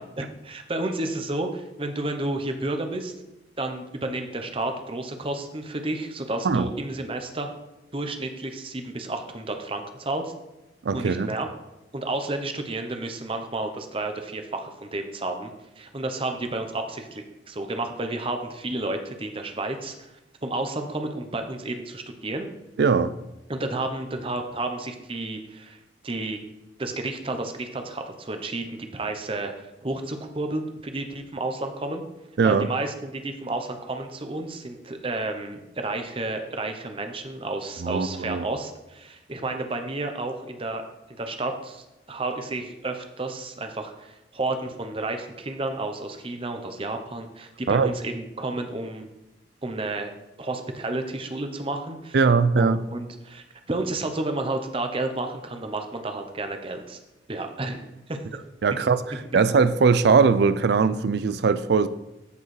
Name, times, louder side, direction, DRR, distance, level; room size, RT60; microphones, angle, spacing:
voice 1, 0.2-3.1 3.6-7.5 7.9-10.3 10.9-11.5 11.9-20.1 20.4-22.5 23.5-25.8 26.0-26.4 26.8-29.5 29.8-32.0 32.4-40.8 41.1-49.1 49.6-50.1 50.4-52.2 52.6-57.0 57.3-58.2, right 2 dB, 30° right, 0.8 m, -31 dB
voice 2, 10.8-11.3 22.8-23.1 32.4-32.7 37.8-38.4 47.7-47.9 52.1-52.8 58.6-59.0 59.3-61.9, right 5 dB, 60° right, 0.4 m, -20 dB
13.5 x 4.6 x 3.2 m
head